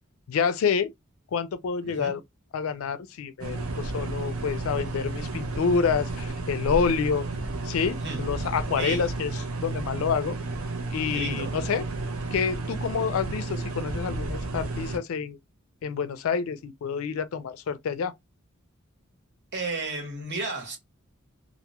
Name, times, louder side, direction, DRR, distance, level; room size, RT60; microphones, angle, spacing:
voice 1, 0.3-0.9 1.3-2.2 2.5-7.3 7.6-9.3 9.6-10.4 10.9-11.9 12.3-15.4 15.8-18.1, left 6 dB, 75° left, 0.4 m, -28 dB
voice 2, 1.8-2.1 8.0-8.2 8.8-9.1 11.1-11.6 19.5-20.8, right 3 dB, 55° right, 1.0 m, -33 dB
sound 1, 3.4-15.0, right 2 dB, 80° right, 0.5 m, -32 dB
2.2 x 2.1 x 2.8 m
head